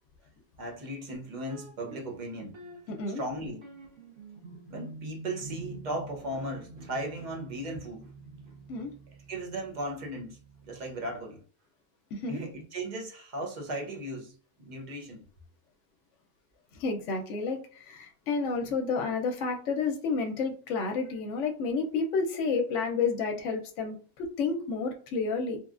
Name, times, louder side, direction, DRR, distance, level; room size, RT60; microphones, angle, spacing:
voice 1, 0.6-2.6 3.1-3.6 4.7-8.1 9.3-11.4 12.3-15.2, right 1 dB, 45° right, 0.7 m, -37 dB
sound 1, 1.5-11.2, right 3 dB, 85° right, 1.5 m, -48 dB
voice 2, 2.9-3.2 8.7-8.9 12.1-12.4 16.8-25.6, left 4 dB, 65° left, 0.9 m, -30 dB
3.1 x 2.3 x 2.4 m
omnidirectional pair, 1.4 m